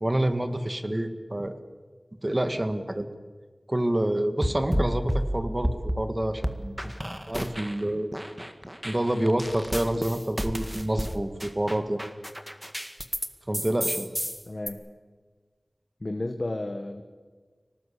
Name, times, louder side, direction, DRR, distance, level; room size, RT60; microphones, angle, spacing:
voice 1, 0.0-1.5 2.2-3.1 3.7-6.8 7.3-8.1 8.8-12.0 13.5-14.1, right 1 dB, 30° right, 9 dB, 2.0 m, -27 dB
sound 1, 4.4-6.1 6.4-7.8 8.1-13.3 13.5-14.7, equal, 10° right, 1.9 m, -31 dB
voice 2, 14.4-14.8 16.0-17.0, left 2 dB, 55° left, 5 dB, 1.6 m, -32 dB
25.0 x 18.5 x 8.5 m, 1.5 s
wide cardioid pair, 55°, 0 cm